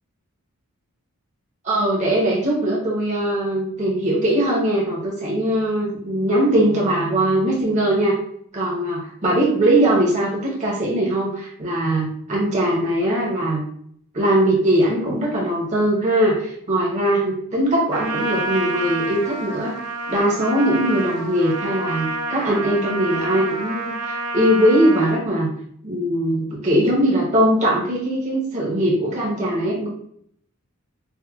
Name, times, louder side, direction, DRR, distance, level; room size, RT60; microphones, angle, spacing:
voice 1, 1.6-8.2 8.5-13.6 14.1-19.7 20.1-25.5 25.8-29.9, right 1 dB, 30° right, -5 dB, 0.8 m, -20 dB
Trumpet, 17.9-25.2, right 2 dB, 90° right, 0.5 m, -28 dB
4.4 x 2.2 x 2.3 m, 0.67 s
head